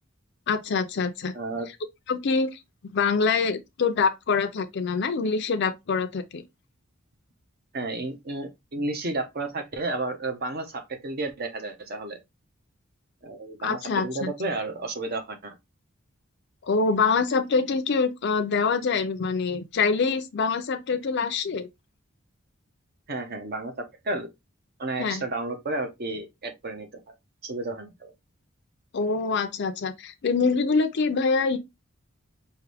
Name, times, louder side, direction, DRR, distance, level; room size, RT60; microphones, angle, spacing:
voice 1, 0.5-1.3 2.1-2.6 2.9-6.4 13.6-14.3 16.6-21.7 25.0-25.2 28.9-31.6, left 4 dB, 55° left, 0.5 m, -25 dB
voice 2, 1.3-1.7 7.7-12.2 13.2-15.6 23.1-24.3 24.8-27.1 27.4-28.1, right 2 dB, 45° right, 1.0 m, -32 dB
4.7 x 2.7 x 3.3 m
head